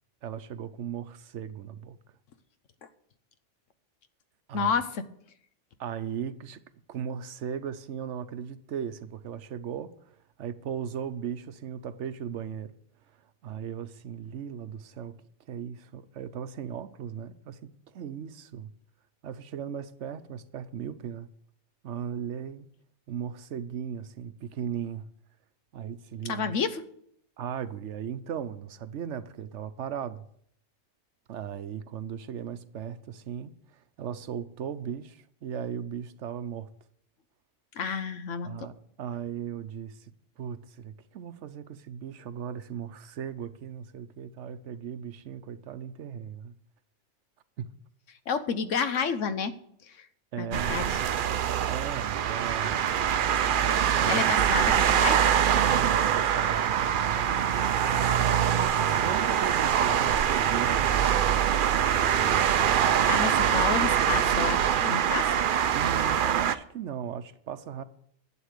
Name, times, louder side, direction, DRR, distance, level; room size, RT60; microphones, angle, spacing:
voice 1, 0.2-2.2 4.5-4.7 5.8-6.6 6.9-12.7 13.1-15.2 15.5-18.7 19.2-21.3 21.8-22.7 23.1-25.1 25.7-26.5 27.4-30.3 31.3-36.7 38.4-46.5 47.6-47.7 50.3-50.8 51.6-52.9 53.9-54.3 55.6-58.3 58.9-63.3 65.7-67.8, right 8 dB, 75° right, 1.0 m, -37 dB
voice 2, 4.5-5.0 26.3-26.9 37.8-38.6 48.3-49.5 50.4-51.0 54.1-55.3 63.1-65.4, left 6 dB, 85° left, 1.2 m, -30 dB
sound 1, 50.5-66.6, right 9 dB, 55° right, 0.6 m, -24 dB
11.5 x 7.7 x 6.6 m
omnidirectional pair, 1.3 m